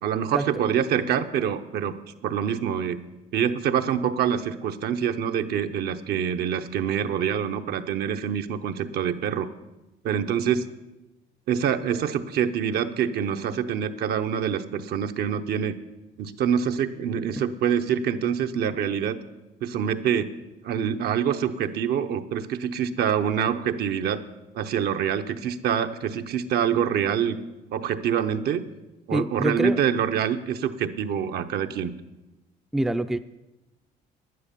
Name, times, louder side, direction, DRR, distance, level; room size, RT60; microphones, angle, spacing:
voice 1, 0.0-2.0 2.2-3.0 3.3-9.5 10.0-10.7 11.5-15.8 16.2-19.2 19.6-20.3 20.6-24.2 24.5-27.4 27.7-28.6 29.1-31.9, right 8 dB, 70° right, 8 dB, 0.9 m, -25 dB
voice 2, 29.1-29.8 32.7-33.2, right 1 dB, ahead, 9 dB, 0.4 m, -25 dB
10.5 x 9.7 x 6.9 m, 1.0 s
cardioid pair, 110°, 17 cm